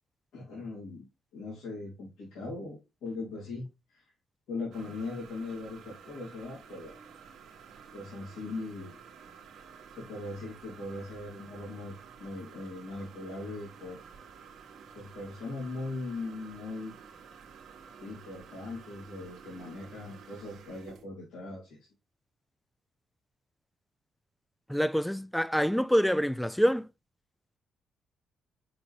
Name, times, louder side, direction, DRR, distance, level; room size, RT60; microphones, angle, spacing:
voice 1, 0.3-1.1 1.3-4.0 4.5-7.0 7.9-9.0 10.0-11.9 12.2-14.0 14.9-16.9 18.0-21.8, left 3 dB, 90° left, 2.8 m, -40 dB
sound 1, 4.7-21.0, right 6 dB, 75° right, 1.3 m, -51 dB
voice 2, 24.7-26.9, equal, ahead, 0.3 m, -26 dB
5.9 x 5.1 x 3.2 m
cardioid pair, 90°, 0 cm